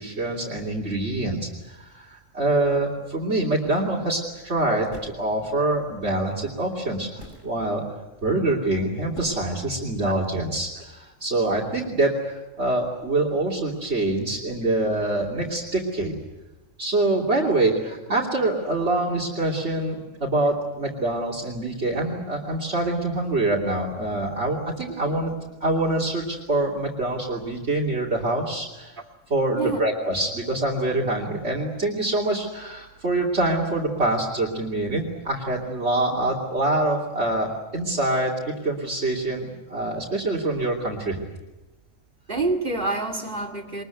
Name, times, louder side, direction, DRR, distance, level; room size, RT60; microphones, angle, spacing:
voice 1, 0.0-7.8 8.2-16.1 16.8-25.3 25.6-28.9 29.3-41.2, right 2 dB, 55° right, -4 dB, 3.2 m, -25 dB
sound 1, 4.3-4.4 4.9-5.8 6.7-6.8 7.2-7.6 8.4-8.8 9.1-9.4, equal, 75° left, 5.4 m, -43 dB
voice 2, 24.9-25.4 29.5-29.9 36.1-36.2 42.3-43.8, right 3 dB, 40° right, 3 dB, 2.5 m, -28 dB
23.0 x 21.5 x 9.2 m, 1.1 s
omnidirectional pair, 1.3 m